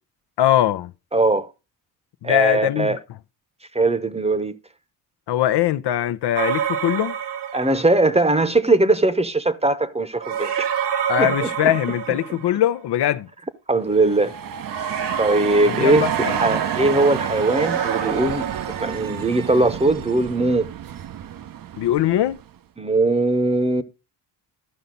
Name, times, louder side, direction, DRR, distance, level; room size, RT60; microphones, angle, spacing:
voice 1, 0.4-0.9 2.2-3.0 5.3-7.1 11.1-13.3 15.7-16.4 21.8-22.4, left 12 dB, 70° left, 0.7 m, -21 dB
voice 2, 1.1-1.5 2.2-3.0 3.7-4.6 7.5-10.7 11.2-11.5 12.3-12.4 13.7-14.3 15.2-20.7 22.8-23.8, right 2 dB, 15° right, 0.9 m, -20 dB
sound 1, 6.4-8.1 10.2-12.7 14.7-19.1, right 8 dB, 70° right, 1.7 m, -28 dB
sound 2, 13.9-22.6, right 10 dB, 50° right, 0.7 m, -30 dB
13.0 x 5.7 x 3.9 m
cardioid pair, 85°, 43 cm